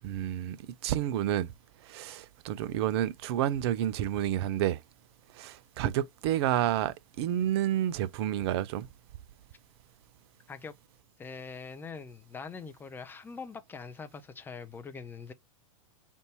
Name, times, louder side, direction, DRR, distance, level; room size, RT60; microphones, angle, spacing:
voice 1, 0.0-0.6 0.8-1.5 1.8-4.8 5.3-8.9, right 12 dB, 45° right, 0.5 m, -30 dB
voice 2, 11.2-15.3, left 5 dB, 10° left, 0.5 m, -43 dB
3.5 x 2.6 x 2.8 m
figure-of-eight pair, 100°, 18 cm